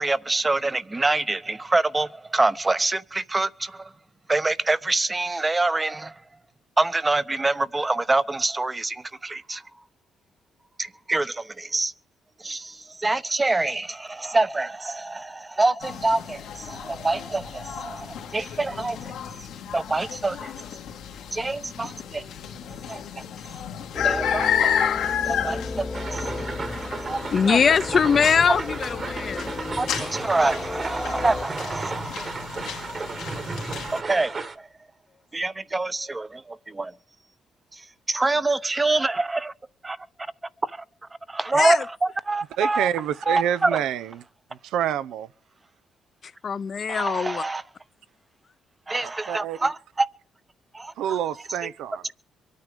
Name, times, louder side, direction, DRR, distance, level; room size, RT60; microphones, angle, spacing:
voice 1, 0.0-3.9 4.3-6.2 6.8-9.6 10.8-11.9 12.4-19.1 19.7-20.5 21.3-22.2 22.9-23.2 24.0-24.8 25.3-26.3 27.1-27.8 28.5-28.6 29.8-33.0 33.9-34.7 35.3-36.9 37.7-37.8 38.1-39.5 39.8-40.0 40.6-40.8 41.3-42.9 43.3-43.8 46.9-47.6 48.9-50.1 50.7-51.2 51.6-51.7, right 2 dB, 20° right, 0.8 m, -26 dB
sound 1, 15.8-34.0, left 8 dB, 85° left, 2.0 m, -32 dB
sound 2, 23.9-31.5, left 3 dB, 20° left, 1.2 m, -34 dB
sound 3, 25.9-34.6, right 3 dB, 40° right, 1.5 m, -34 dB
voice 2, 27.3-29.5 41.5-41.8 46.4-47.4, left 6 dB, 50° left, 0.7 m, -22 dB
voice 3, 42.6-44.0 44.7-45.3 49.3-49.6 51.0-52.0, right 10 dB, 85° right, 0.6 m, -27 dB
24.0 x 9.4 x 5.1 m
cardioid pair, 90°, 0 cm